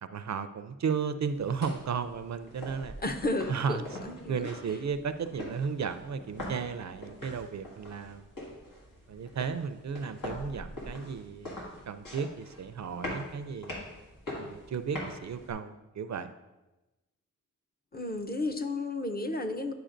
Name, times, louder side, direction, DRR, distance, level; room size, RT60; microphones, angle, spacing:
voice 1, 0.0-2.9 3.5-3.8 4.3-8.3 9.1-11.5 11.9-13.7 14.3-16.3, right 6 dB, 60° right, 11 dB, 0.4 m, -34 dB
sound 1, 1.3-15.5, left 1 dB, 90° left, 1.8 m, -43 dB
voice 2, 3.0-4.5 17.9-19.7, left 2 dB, 30° left, 6 dB, 0.6 m, -33 dB
10.0 x 4.8 x 2.6 m, 1.1 s
cardioid pair, 55°, 32 cm